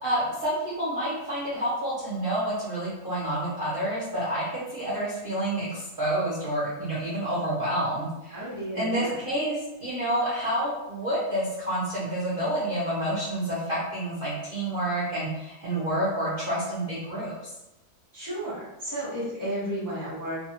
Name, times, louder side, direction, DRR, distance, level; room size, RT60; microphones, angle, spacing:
voice 1, 0.0-8.4 8.7-17.4, right 1 dB, 50° right, -9 dB, 0.7 m, -29 dB
voice 2, 8.3-9.2 18.1-20.4, right 1 dB, 20° left, -9 dB, 0.6 m, -33 dB
2.6 x 2.3 x 2.8 m, 0.95 s
omnidirectional pair, 1.7 m